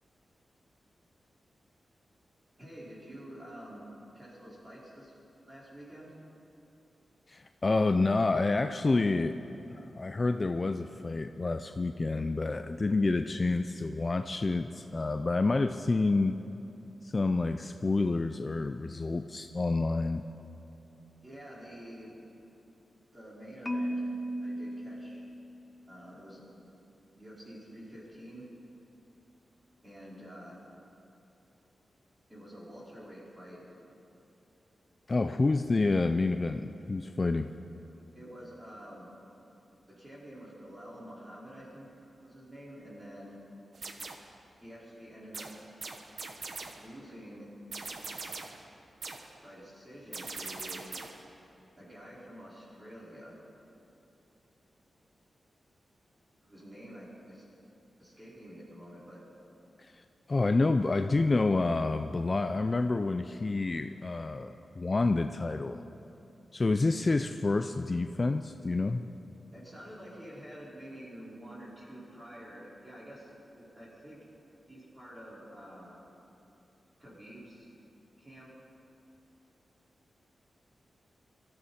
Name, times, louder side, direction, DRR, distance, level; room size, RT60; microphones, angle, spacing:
voice 1, 2.6-3.9 4.1-6.1 21.2-22.2 23.1-24.1 24.4-25.2 25.9-26.4 27.2-28.5 29.8-30.6 32.3-33.6 38.1-39.1 39.9-41.9 42.2-43.4 44.6-45.5 46.7-47.5 49.4-50.8 51.8-53.4 56.4-57.4 58.0-59.2 69.5-74.2 74.7-76.0 77.0-77.7 78.2-78.5, equal, 20° right, -6 dB, 4.8 m, -48 dB
voice 2, 7.3-9.4 9.7-16.4 17.0-20.2 35.1-37.5 59.8-65.8 66.5-69.0, left 3 dB, 30° left, 8 dB, 0.4 m, -28 dB
Marimba xylophone, 23.7-25.8, equal, 15° left, 0.8 m, -36 dB
sound 1, 43.7-44.4 45.3-46.9 47.7-48.7 49.0-49.4 50.1-51.3, right 3 dB, 60° right, 1.1 m, -41 dB
23.5 x 14.0 x 4.3 m, 2.9 s
wide cardioid pair, 125°, 0 cm